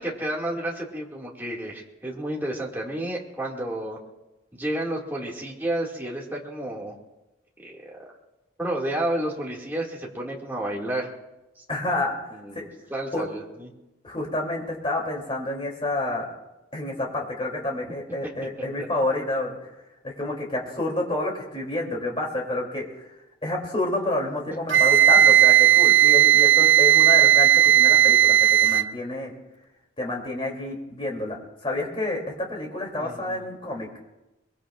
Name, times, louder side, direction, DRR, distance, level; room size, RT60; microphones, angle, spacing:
voice 1, 0.0-4.0 4.5-7.0 7.6-8.1 8.6-11.1 11.6-11.7 12.3-13.7 18.8-18.9 33.0-33.5, right 1 dB, 10° right, -3 dB, 2.2 m, -31 dB
voice 2, 11.7-12.2 12.5-12.6 13.1-13.2 14.0-16.3 16.7-19.6 20.0-22.8 23.4-29.3 30.0-33.9, left 2 dB, 25° left, -1 dB, 3.1 m, -29 dB
Wind instrument woodwind instrument, 24.7-28.9, right 12 dB, 60° right, 0.5 m, -16 dB
22.5 x 22.0 x 2.5 m, 0.99 s
head